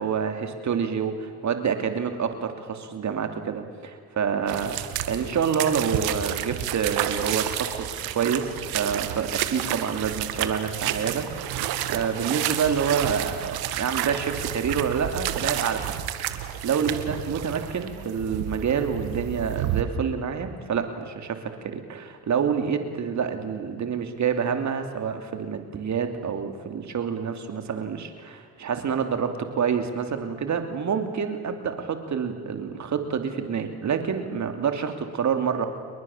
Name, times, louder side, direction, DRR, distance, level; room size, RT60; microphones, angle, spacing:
voice 1, 0.0-16.0 16.6-35.7, right 7 dB, 50° right, 7 dB, 2.9 m, -27 dB
sound 1, 4.5-19.8, right 12 dB, 85° right, 1.9 m, -30 dB
29.5 x 22.5 x 7.3 m, 2.1 s
supercardioid pair, 80°, 36 cm